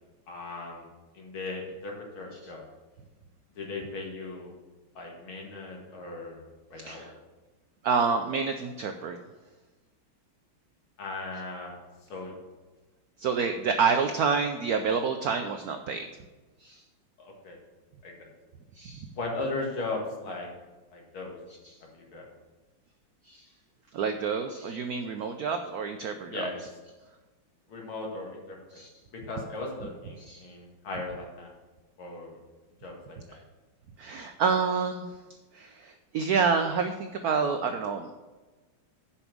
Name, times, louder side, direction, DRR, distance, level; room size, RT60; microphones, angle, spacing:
voice 1, 0.3-0.9 1.1-2.7 3.6-4.5 5.0-6.4 6.7-7.1 11.0-11.8 12.1-12.3 17.2-17.6 18.0-18.3 19.2-20.5 20.9-21.4 21.9-22.3 26.3-26.6 27.7-28.6 29.1-31.6 32.0-32.4 32.8-33.4, left 3 dB, 80° left, 0 dB, 2.6 m, -37 dB
voice 2, 6.8-7.1 7.8-9.2 13.2-16.1 16.6-16.8 18.7-19.1 21.6-21.8 23.2-23.5 23.9-26.5 28.7-28.9 30.2-30.5 34.0-35.1 35.5-38.1, right 5 dB, 85° right, 6 dB, 0.8 m, -28 dB
7.0 x 5.4 x 7.3 m, 1.2 s
omnidirectional pair, 2.3 m